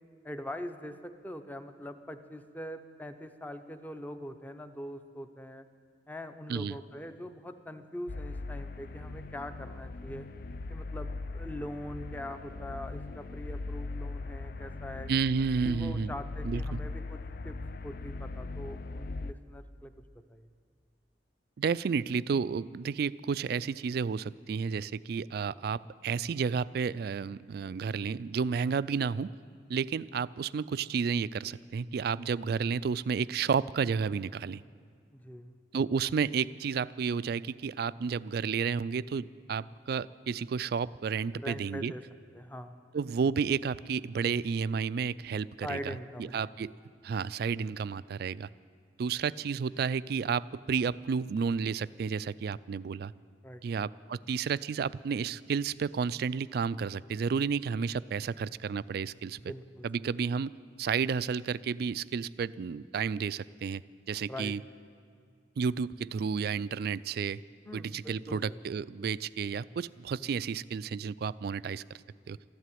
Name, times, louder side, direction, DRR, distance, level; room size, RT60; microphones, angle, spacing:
voice 1, 0.2-5.6 6.1-10.3 10.7-15.1 15.6-17.6 17.8-19.9 20.3-20.5 35.1-35.6 41.4-42.0 42.3-42.8 45.6-46.5 53.4-53.6 59.4-59.9 64.3-64.5 67.6-68.6, equal, 10° left, 9 dB, 0.7 m, -42 dB
sound 1, 8.1-19.3, left 3 dB, 50° left, 0.5 m, -39 dB
voice 2, 15.1-16.1 16.4-16.8 21.6-29.3 29.7-34.6 35.7-41.9 42.9-45.9 46.2-46.7 47.0-48.5 49.0-53.1 53.6-59.4 59.8-60.5 60.8-63.8 64.1-64.6 65.6-67.4 67.7-71.8 72.3-72.4, right 6 dB, 55° right, 18 dB, 0.3 m, -31 dB
14.0 x 11.5 x 9.2 m, 2.2 s
head